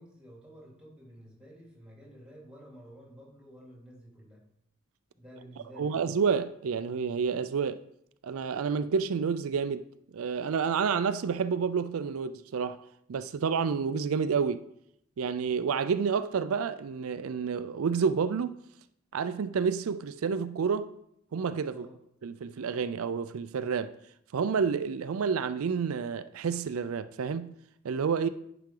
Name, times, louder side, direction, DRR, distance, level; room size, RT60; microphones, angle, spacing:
voice 1, 0.0-4.4 5.1-6.0 21.7-22.0, equal, 5° right, 3.1 m, -51 dB
voice 2, 5.8-7.8 8.2-9.9 10.1-12.8 13.1-14.7 15.2-18.5 19.1-20.9 21.3-21.9 22.2-23.9 24.3-27.5 27.8-28.3, right 6 dB, 90° right, 0.4 m, -29 dB
10.5 x 5.9 x 3.8 m
head